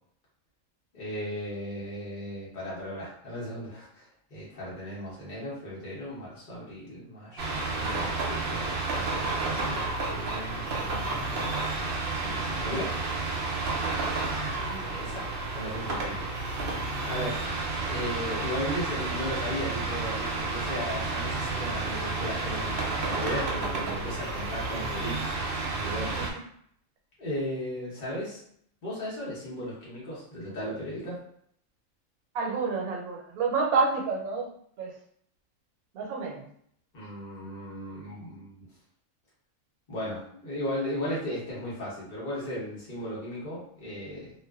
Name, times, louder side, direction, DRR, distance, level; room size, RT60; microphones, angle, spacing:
voice 1, 0.9-9.8 10.1-11.5 12.1-12.9 14.9-16.7 17.1-17.4 17.9-26.4 27.2-28.4 28.8-31.2 36.9-38.7 39.9-44.3, equal, 40° left, -8 dB, 0.9 m, -36 dB
sound 1, 7.4-26.3, right 3 dB, 65° right, 0.5 m, -31 dB
voice 2, 13.8-15.0 26.2-26.3 32.3-34.5 34.8-34.9 35.9-36.5, right 4 dB, 90° right, 0 dB, 1.0 m, -30 dB
2.4 x 2.3 x 2.3 m, 0.67 s
omnidirectional pair, 1.5 m